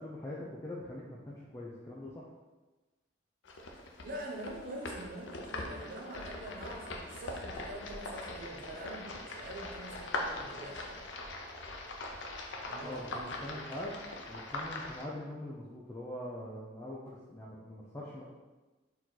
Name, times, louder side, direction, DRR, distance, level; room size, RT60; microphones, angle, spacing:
voice 1, 0.0-2.1 12.8-13.1 13.4-13.9 14.3-18.2, left 1 dB, 15° left, -6 dB, 0.5 m, -43 dB
sound 1, 3.4-15.0, left 2 dB, 85° left, 0.6 m, -41 dB
voice 2, 4.0-11.0 12.7-13.7, right 1 dB, 50° right, 0 dB, 0.7 m, -45 dB
4.5 x 3.0 x 3.8 m, 1.2 s
head